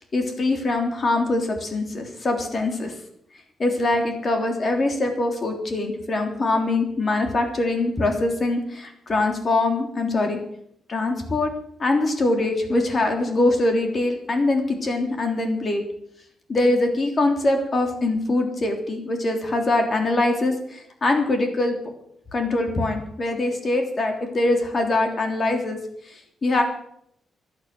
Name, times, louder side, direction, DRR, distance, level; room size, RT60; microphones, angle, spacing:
voice 1, 0.1-2.9 3.6-10.4 10.9-11.5 11.8-15.8 16.5-21.8 22.3-25.8 26.1-26.6, left 2 dB, 35° left, 4 dB, 3.4 m, -23 dB
15.5 x 11.5 x 7.8 m, 0.72 s
cardioid pair, 140°, 0 cm